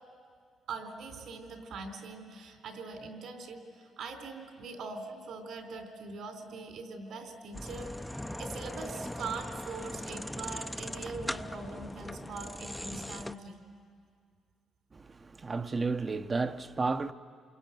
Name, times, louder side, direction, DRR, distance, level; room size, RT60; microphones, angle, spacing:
voice 1, 0.7-7.9 8.4-13.6, right 4 dB, 75° right, 3.7 m, -42 dB
sound 1, 7.5-13.3, left 1 dB, 5° left, 0.7 m, -40 dB
voice 2, 14.9-17.1, right 3 dB, 30° right, 0.9 m, -32 dB
27.5 x 23.0 x 9.2 m
cardioid pair, 90°, 0 cm